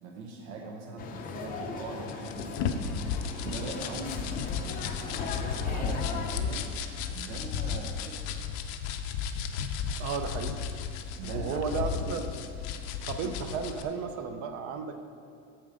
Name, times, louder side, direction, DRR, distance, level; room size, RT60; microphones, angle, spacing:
voice 1, 0.0-2.9 3.4-6.7 7.1-8.2 11.2-12.2, right 3 dB, 85° right, -1 dB, 1.1 m, -41 dB
sound 1, 1.0-6.4, left 4 dB, 25° left, 0.5 m, -38 dB
sound 2, 2.1-13.8, left 6 dB, 75° left, 0.7 m, -34 dB
voice 2, 10.0-10.6 11.2-12.2 13.1-15.0, right 6 dB, 45° right, 7 dB, 0.5 m, -34 dB
7.3 x 7.3 x 5.0 m, 2.4 s
cardioid pair, 170°, 35 cm